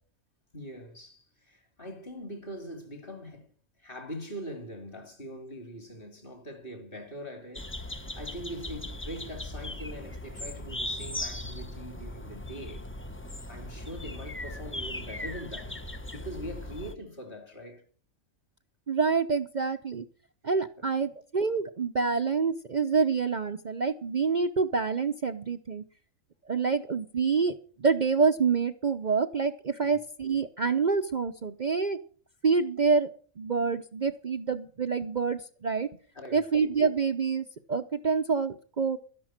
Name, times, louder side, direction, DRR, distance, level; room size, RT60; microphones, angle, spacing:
voice 1, 0.5-12.9 13.5-15.8 16.1-17.8 20.8-21.1 29.8-30.0 36.1-36.4, equal, 40° left, 2.9 m, -42 dB
sound 1, 7.5-16.9, left 1 dB, 10° left, 0.7 m, -38 dB
voice 2, 18.9-20.0 20.4-25.8 26.5-32.0 32.4-33.1 33.4-35.9 36.3-39.0, right 5 dB, 40° right, 0.8 m, -27 dB
13.0 x 11.0 x 7.4 m
omnidirectional pair, 1.3 m